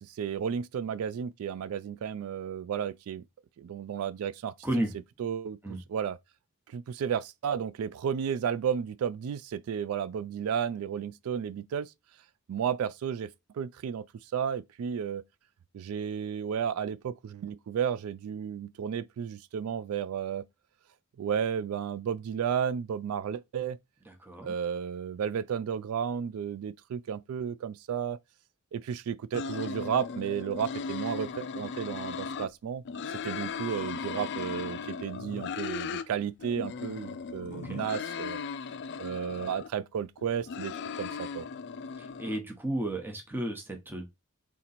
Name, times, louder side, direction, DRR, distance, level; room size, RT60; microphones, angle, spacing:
voice 1, 0.0-3.2 3.6-4.5 5.2-5.6 5.9-6.2 6.7-11.9 12.5-15.2 15.7-20.4 21.2-23.8 24.4-28.2 28.7-38.4 39.0-41.5, right 8 dB, 75° right, 0.3 m, -33 dB
voice 2, 4.6-5.0 5.6-5.8 24.1-24.5 37.5-37.8 42.2-44.1, right 1 dB, 10° right, 0.8 m, -33 dB
sound 1, 29.3-32.5 32.9-36.1 36.4-39.7 40.2-42.4, left 5 dB, 55° left, 0.4 m, -37 dB
3.7 x 2.9 x 4.1 m
head